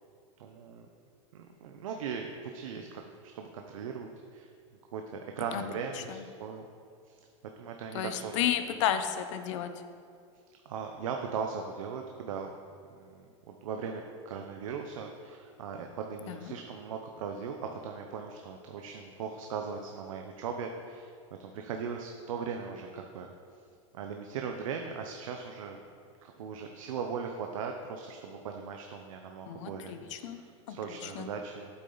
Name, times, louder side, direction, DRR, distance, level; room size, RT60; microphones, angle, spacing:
voice 1, 0.4-0.9 1.3-4.5 4.9-6.7 7.1-7.2 7.6-8.5 10.6-12.5 12.9-17.6 17.8-21.1 21.4-23.3 23.9-25.8 26.2-31.7, right 6 dB, 85° right, 3 dB, 0.7 m, -39 dB
voice 2, 7.9-9.7 16.3-16.4 29.5-30.4 30.7-30.8 31.2-31.3, left 10 dB, 65° left, 9 dB, 0.7 m, -32 dB
8.5 x 8.2 x 3.9 m, 2.3 s
supercardioid pair, 140°, 17 cm